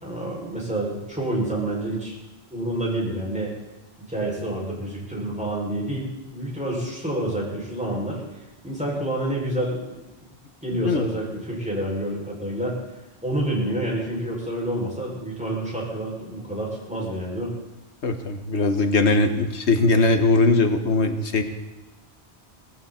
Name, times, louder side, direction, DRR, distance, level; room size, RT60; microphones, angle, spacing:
voice 1, 0.0-2.2 2.5-3.5 4.1-10.0 10.6-12.8 13.2-17.5, right 1 dB, 5° right, -4 dB, 6.1 m, -28 dB
voice 2, 10.7-11.1 18.0-21.4, left 3 dB, 85° left, 7 dB, 1.5 m, -20 dB
19.0 x 16.0 x 4.3 m, 1.1 s
omnidirectional pair, 1.1 m